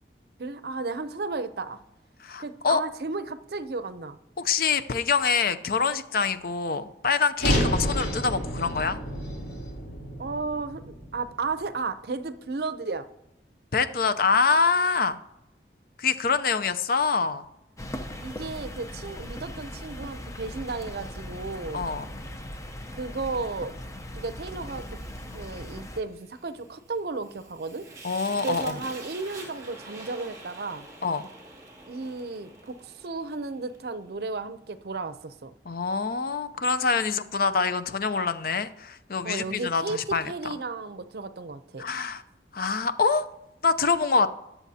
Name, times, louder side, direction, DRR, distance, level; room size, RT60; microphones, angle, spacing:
voice 1, 0.4-1.8 2.4-4.2 10.2-13.1 18.2-21.9 22.9-23.7 24.1-25.0 25.3-27.9 28.4-30.9 31.9-35.5 39.2-40.0 40.3-41.8, right 3 dB, 60° right, 12 dB, 0.6 m, -34 dB
voice 2, 2.2-2.8 4.4-9.0 13.7-15.2 16.0-17.5 21.7-22.0 28.0-28.8 31.0-31.2 35.7-40.5 41.8-42.2 42.5-43.3 43.6-44.3, left 5 dB, 55° left, 12 dB, 0.6 m, -25 dB
sound 1, 7.4-11.7, equal, 85° left, 2.8 m, -29 dB
sound 2, 17.8-26.0, left 1 dB, 20° left, 0.7 m, -39 dB
Fire, 24.6-33.8, right 2 dB, 20° right, 2.6 m, -46 dB
21.0 x 7.1 x 2.8 m, 0.90 s
head